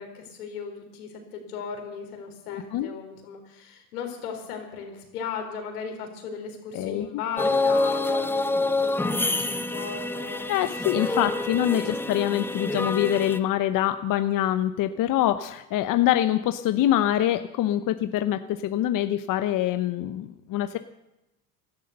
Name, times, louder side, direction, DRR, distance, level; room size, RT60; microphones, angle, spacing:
voice 1, 0.0-10.4 10.9-11.4 11.7-11.9, left 6 dB, 85° left, 4 dB, 4.2 m, -37 dB
voice 2, 2.5-2.9 6.7-7.2 10.5-20.8, left 12 dB, 45° left, 11 dB, 0.9 m, -25 dB
sound 1, 7.4-13.4, left 2 dB, 5° left, 0.8 m, -27 dB
16.5 x 12.5 x 6.7 m, 0.90 s
hypercardioid pair, 90°, 44 cm